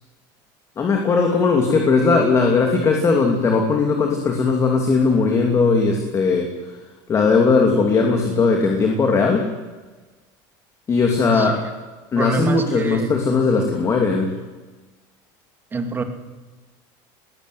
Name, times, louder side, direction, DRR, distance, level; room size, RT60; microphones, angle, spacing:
voice 1, 0.8-6.7 7.1-9.5 10.9-11.7 12.1-14.3, left 4 dB, 25° left, 2 dB, 2.8 m, -18 dB
voice 2, 12.1-13.1 15.7-16.0, right 3 dB, 20° right, 6 dB, 2.5 m, -25 dB
20.0 x 15.5 x 9.5 m, 1.2 s
cardioid pair, 145°, 11 cm